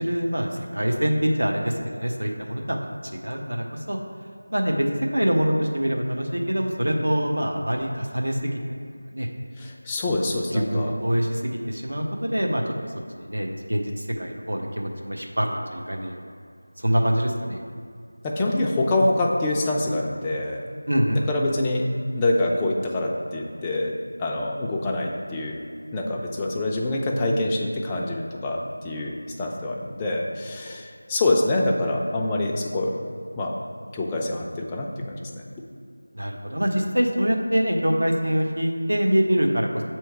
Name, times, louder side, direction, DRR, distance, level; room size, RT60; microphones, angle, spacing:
voice 1, 0.0-2.9 3.2-4.0 4.5-4.9 5.1-8.6 9.1-9.3 10.1-10.3 10.5-11.4 11.7-12.6 13.2-16.2 16.8-17.6 20.9-21.2 36.1-39.8, equal, 80° right, 1 dB, 0.9 m, -24 dB
voice 2, 9.6-10.9 18.2-20.7 21.1-25.6 25.9-32.9 33.4-33.5 33.9-35.4, left 2 dB, 10° left, -2 dB, 0.4 m, -25 dB
7.4 x 3.1 x 4.6 m, 2.3 s
figure-of-eight pair, 170°, 0 cm